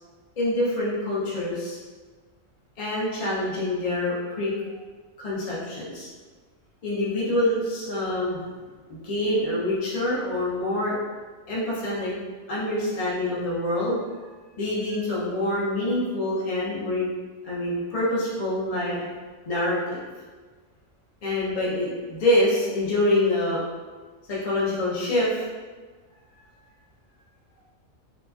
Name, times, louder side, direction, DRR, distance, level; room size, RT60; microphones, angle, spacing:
voice 1, 0.4-1.8 2.8-4.5 5.2-6.1 6.8-8.5 8.9-11.0 11.5-12.1 12.5-14.0 14.6-17.1 17.4-19.1 19.5-20.0 21.2-23.6 24.3-25.4, left 1 dB, 60° left, -7 dB, 0.4 m, -26 dB
2.9 x 2.6 x 2.3 m, 1.4 s
omnidirectional pair, 1.4 m